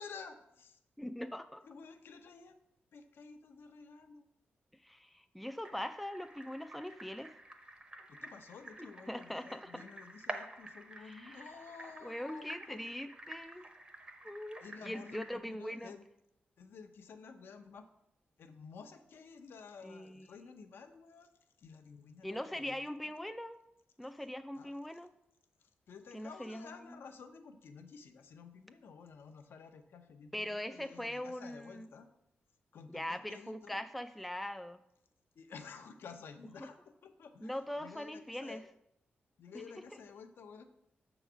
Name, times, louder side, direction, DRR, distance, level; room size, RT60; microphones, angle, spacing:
voice 1, 0.0-0.8 1.6-2.6 2.9-4.3 8.1-12.8 14.6-16.0 16.6-17.9 18.4-21.3 21.6-22.8 23.0-23.1 24.6-24.7 25.6-32.1 32.7-33.8 35.3-38.7 39.4-40.6, left 5 dB, 75° left, 7 dB, 0.7 m, -52 dB
voice 2, 1.0-1.6 4.8-7.3 9.1-9.8 11.0-11.4 12.0-13.7 14.2-15.9 19.8-20.3 22.2-23.6 24.0-25.1 26.1-27.0 30.3-31.9 32.9-34.8 37.4-38.6, left 1 dB, ahead, 9 dB, 0.3 m, -41 dB
sound 1, 5.6-15.4, right 2 dB, 25° right, 0.8 m, -49 dB
6.8 x 3.9 x 6.1 m, 0.80 s
wide cardioid pair, 125°, 4 cm